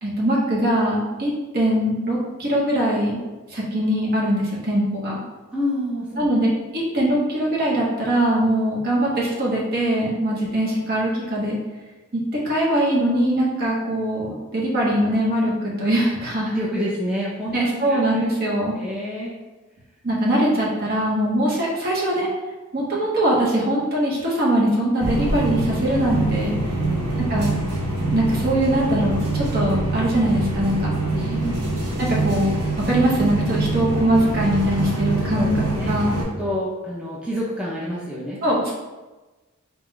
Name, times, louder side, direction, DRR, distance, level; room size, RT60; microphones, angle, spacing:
voice 1, 0.0-3.2 3.5-5.2 6.2-11.6 12.1-16.5 17.5-18.7 20.0-22.3 22.7-26.5 27.3-27.5 28.1-30.9 32.1-32.6 32.9-35.5 35.9-36.2 38.4-38.7, right 1 dB, 45° right, -4 dB, 1.0 m, -22 dB
voice 2, 5.5-6.3 10.4-10.5 16.5-18.0 18.7-19.3 20.3-20.4 26.8-27.2 31.1-31.8 35.3-38.4, equal, 5° right, -8 dB, 0.5 m, -28 dB
sound 1, 25.0-36.2, right 2 dB, 80° right, 1.0 m, -25 dB
4.0 x 2.3 x 3.7 m, 1.1 s
head